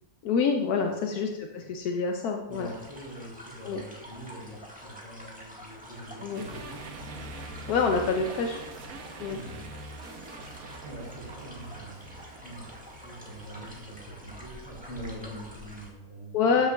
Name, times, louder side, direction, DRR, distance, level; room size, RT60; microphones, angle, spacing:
voice 1, 0.2-2.7 3.6-3.8 6.2-6.4 7.7-8.6 9.2-9.4 16.3-16.7, left 5 dB, 85° left, 3 dB, 1.2 m, -26 dB
voice 2, 2.5-6.8 8.7-9.7 10.8-16.6, right 1 dB, 35° left, -8 dB, 2.6 m, -44 dB
sound 1, 2.5-15.9, equal, 5° right, 1.4 m, -48 dB
sound 2, 6.3-14.0, right 2 dB, 70° right, 1.3 m, -44 dB
13.0 x 6.7 x 2.3 m, 0.98 s
omnidirectional pair, 1.6 m